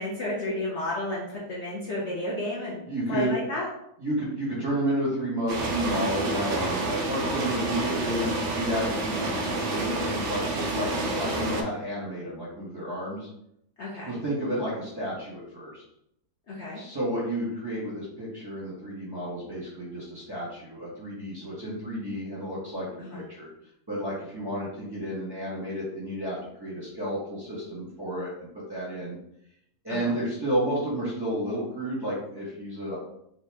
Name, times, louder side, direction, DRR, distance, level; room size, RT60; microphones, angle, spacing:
voice 1, 0.0-2.8 3.1-3.7 11.0-11.3 13.8-14.2 16.5-16.8 23.0-23.2 29.9-30.2, left 1 dB, 55° left, -5 dB, 0.9 m, -32 dB
voice 2, 2.9-3.4 4.0-13.3 14.1-15.8 16.7-23.5 23.9-29.2 29.8-33.0, right 1 dB, 15° right, -9 dB, 1.1 m, -31 dB
sound 1, 5.5-11.6, right 2 dB, 65° right, 0.5 m, -29 dB
2.9 x 2.9 x 3.3 m, 0.76 s
omnidirectional pair, 1.6 m